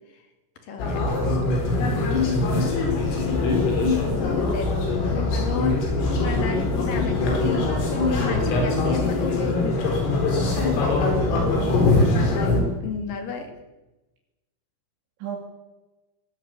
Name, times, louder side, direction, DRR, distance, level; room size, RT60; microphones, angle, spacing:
voice 1, 0.6-1.2 1.9-2.2 4.2-4.8 5.1-9.6 11.8-12.5 12.8-13.5, left 5 dB, 50° left, 6 dB, 3.8 m, -33 dB
sound 1, 0.8-12.6, left 3 dB, 75° left, 7.2 m, -22 dB
voice 2, 10.2-11.0 11.4-12.0 12.3-12.7 15.2-15.4, right 5 dB, 65° right, 1 dB, 4.7 m, -35 dB
21.0 x 17.5 x 9.1 m, 1.1 s
omnidirectional pair, 5.9 m